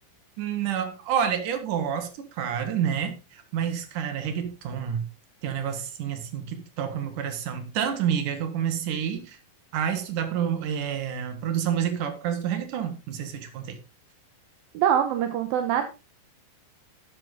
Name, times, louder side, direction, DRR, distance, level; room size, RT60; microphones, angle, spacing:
voice 1, 0.4-5.1 5.4-9.4 9.7-13.8, right 8 dB, 65° right, 3.1 m, -29 dB
voice 2, 14.7-15.9, right 9 dB, 80° right, 2.7 m, -23 dB
12.0 x 9.0 x 3.8 m
omnidirectional pair, 4.2 m